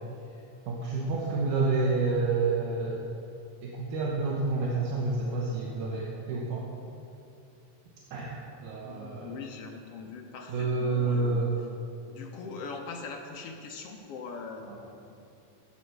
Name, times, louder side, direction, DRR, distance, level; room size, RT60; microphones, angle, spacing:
voice 1, 0.7-3.0 3.6-6.7 8.1-8.3 8.6-9.3 10.5-11.5 14.7-14.8, right 3 dB, 85° right, -3 dB, 2.6 m, -29 dB
voice 2, 8.8-11.5 12.1-14.6 15.1-15.2, left 4 dB, 70° left, 2 dB, 1.5 m, -41 dB
9.4 x 9.4 x 6.6 m, 2.6 s
omnidirectional pair, 3.5 m